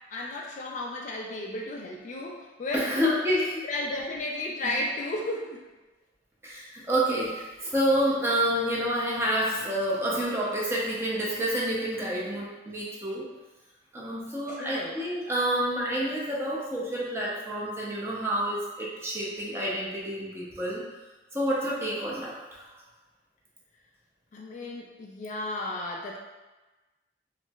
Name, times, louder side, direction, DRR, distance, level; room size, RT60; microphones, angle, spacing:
voice 1, 0.1-3.0 3.6-5.6 14.5-15.0 24.3-26.2, left 1 dB, 45° left, -1 dB, 0.3 m, -33 dB
voice 2, 2.7-3.6 4.6-4.7 6.4-13.2 13.9-20.8 21.3-22.6, equal, 15° right, -6 dB, 0.6 m, -28 dB
4.2 x 2.0 x 2.3 m, 1.2 s
head